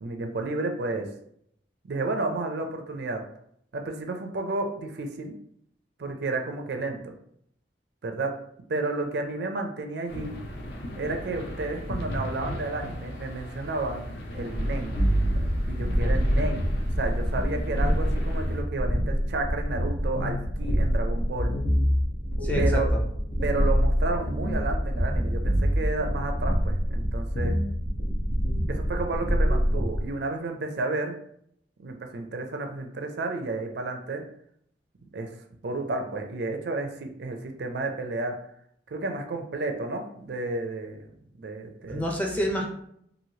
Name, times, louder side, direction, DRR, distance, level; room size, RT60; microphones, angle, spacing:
voice 1, 0.0-1.1 1.8-3.2 3.7-5.3 6.0-7.1 8.0-8.4 8.7-10.3 10.9-14.1 14.3-15.0 15.6-16.7 17.0-21.5 22.6-22.9 23.4-27.6 28.7-31.2 31.8-34.2 35.1-35.3 35.6-38.4 38.9-41.0 41.4-42.1, right 2 dB, 65° right, 4 dB, 0.4 m, -31 dB
sound 1, 10.1-18.6, equal, 60° left, 0.5 m, -36 dB
sound 2, 14.5-30.1, equal, 90° left, 0.9 m, -26 dB
voice 2, 22.4-23.0 41.9-42.6, equal, 10° left, 0 dB, 0.5 m, -28 dB
3.1 x 2.5 x 2.8 m, 0.69 s
head